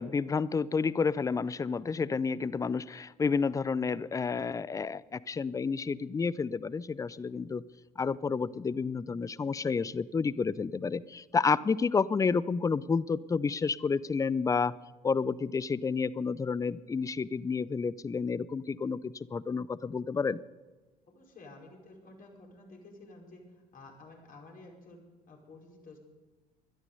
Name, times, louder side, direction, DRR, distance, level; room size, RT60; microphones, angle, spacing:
voice 1, 0.0-7.6 8.0-14.7 15.0-20.4, left 5 dB, 15° left, 21 dB, 0.5 m, -30 dB
voice 2, 21.1-26.0, left 2 dB, 40° left, 0 dB, 5.1 m, -52 dB
21.0 x 12.5 x 5.4 m, 1.2 s
figure-of-eight pair, 60°, 21 cm